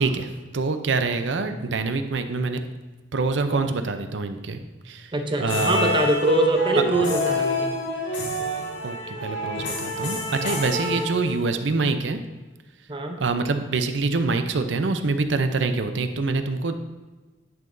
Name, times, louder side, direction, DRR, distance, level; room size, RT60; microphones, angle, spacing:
voice 1, 0.0-2.6 3.1-4.6 4.8-5.1 5.4-5.9 8.8-12.2 13.2-16.7, right 3 dB, 85° right, 8 dB, 0.6 m, -25 dB
voice 2, 5.1-7.7 12.9-13.2, right 1 dB, 30° right, 4 dB, 0.7 m, -23 dB
sound 1, 5.4-11.7, equal, 90° left, 2.0 m, -27 dB
10.5 x 5.8 x 2.7 m, 1.2 s
head